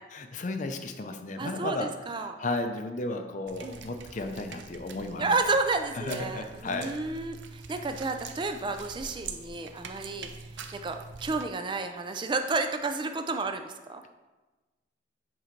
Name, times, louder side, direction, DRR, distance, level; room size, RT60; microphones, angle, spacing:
voice 1, 0.1-1.9 2.4-5.4 6.0-6.9 7.7-7.8, left 2 dB, 40° left, 7 dB, 0.5 m, -34 dB
voice 2, 1.4-2.4 3.6-3.8 5.2-10.3 10.7-14.0, right 3 dB, 25° right, 7 dB, 0.4 m, -31 dB
sound 1, 3.5-11.4, right 4 dB, 75° right, 0.6 m, -44 dB
7.5 x 3.9 x 4.5 m, 1.2 s
head